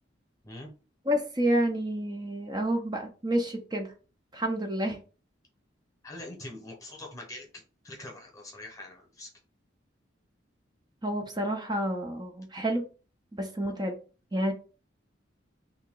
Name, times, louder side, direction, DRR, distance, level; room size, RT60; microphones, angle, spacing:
voice 1, 1.0-3.9 4.3-5.0 11.0-12.8 13.3-14.0 14.3-14.5, right 1 dB, 20° right, 3 dB, 0.6 m, -29 dB
voice 2, 6.0-9.3, left 1 dB, 15° left, 1 dB, 1.1 m, -44 dB
3.4 x 2.8 x 3.7 m, 0.35 s
head